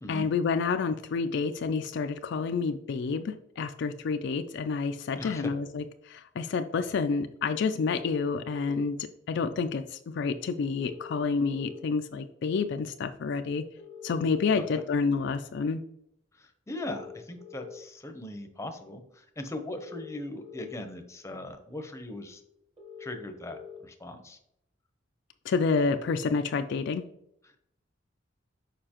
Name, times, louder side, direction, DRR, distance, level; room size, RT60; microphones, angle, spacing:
voice 1, 0.1-13.6 14.0-15.8 25.5-27.0, left 5 dB, 65° left, 8 dB, 0.3 m, -29 dB
voice 2, 5.2-5.5 14.7-14.8 16.3-22.4 23.0-24.4 27.4-27.6, left 1 dB, 15° left, 6 dB, 0.7 m, -39 dB
sound 1, 7.8-8.8 10.8-11.8 13.8-14.8 16.8-17.8 19.8-20.8 22.8-23.8, left 7 dB, 30° right, 1.2 m, -46 dB
6.7 x 5.0 x 2.9 m, 0.76 s
head